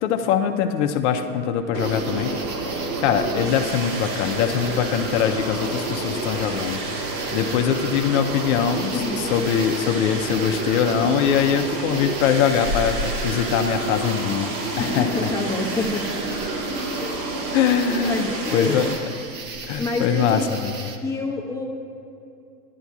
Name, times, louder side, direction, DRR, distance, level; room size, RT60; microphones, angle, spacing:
voice 1, 0.0-2.3 3.0-9.0 9.3-15.1 17.5-18.9 19.7-20.9, left 8 dB, 45° left, 6 dB, 0.7 m, -22 dB
sound 1, 1.7-19.0, right 2 dB, 60° right, 2.1 m, -29 dB
sound 2, 1.8-21.0, right 3 dB, 20° right, 0.5 m, -36 dB
voice 2, 8.9-9.3 14.8-16.2 17.0-17.3 18.0-18.9 19.8-20.5 21.0-21.7, left 3 dB, 5° left, -1 dB, 0.9 m, -27 dB
14.0 x 11.0 x 2.4 m, 2.6 s
hypercardioid pair, 105°, 49 cm